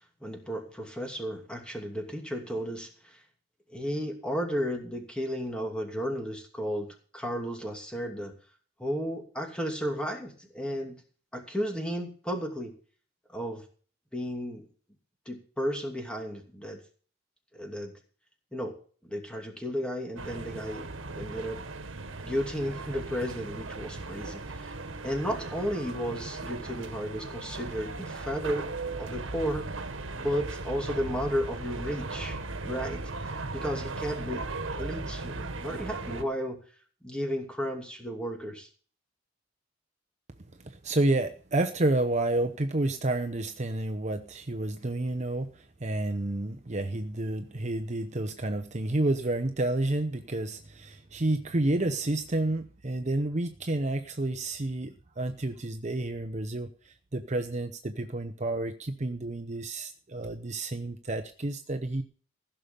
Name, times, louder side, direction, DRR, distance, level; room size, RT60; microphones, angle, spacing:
voice 1, 0.2-3.2 3.7-8.3 8.8-11.0 11.3-12.7 13.3-13.6 14.1-14.7 15.3-16.8 17.5-17.9 18.5-18.8 19.0-21.6 22.2-24.8 25.0-28.7 29.0-29.8 30.1-36.6 37.0-38.7, equal, 5° left, 3 dB, 2.7 m, -33 dB
sound 1, 20.2-36.2, right 3 dB, 80° right, 1.4 m, -37 dB
voice 2, 40.6-62.0, right 2 dB, 35° right, 7 dB, 0.9 m, -30 dB
15.5 x 6.8 x 7.0 m, 0.42 s
head